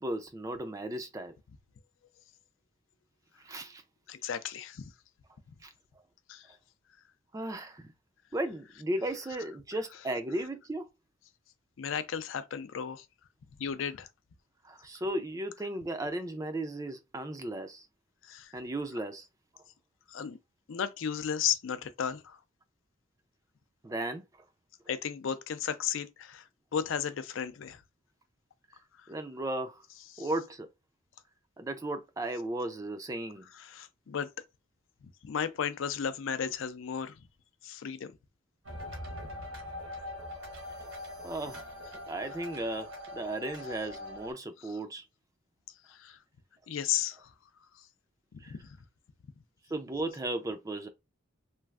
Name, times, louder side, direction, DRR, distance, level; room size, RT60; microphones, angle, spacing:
voice 1, 0.0-1.3 3.4-3.8 5.6-5.7 7.3-7.9 8.3-10.9 14.6-17.9 18.5-19.3 23.8-24.2 29.1-29.8 30.2-30.7 31.6-33.5 41.2-41.6 42.1-45.0 48.4-48.5 49.7-50.9, right 1 dB, 15° right, 0.3 m, -35 dB
voice 2, 4.1-4.9 6.3-6.5 11.8-13.1 13.6-14.1 18.2-18.5 20.1-20.4 20.7-22.4 24.9-26.5 26.7-27.8 30.1-30.3 33.5-34.3 35.2-37.2 37.6-38.1 45.9-46.2 46.7-47.3 48.3-48.8, left 8 dB, 70° left, 0.4 m, -34 dB
sound 1, 38.6-44.3, left 1 dB, 80° right, 1.1 m, -42 dB
3.1 x 2.4 x 2.3 m
head